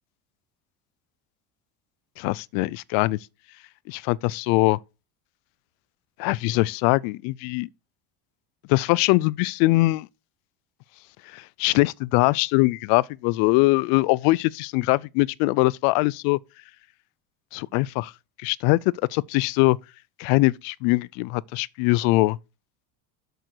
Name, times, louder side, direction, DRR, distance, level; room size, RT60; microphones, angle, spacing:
voice 1, 2.2-3.2 3.9-4.8 6.2-7.7 8.7-10.1 11.3-16.4 17.5-18.1 18.4-18.8 19.1-19.8 20.2-22.4, left 22 dB, 75° left, 0.5 m, -22 dB
7.9 x 6.7 x 4.6 m
cardioid pair, 140°, 34 cm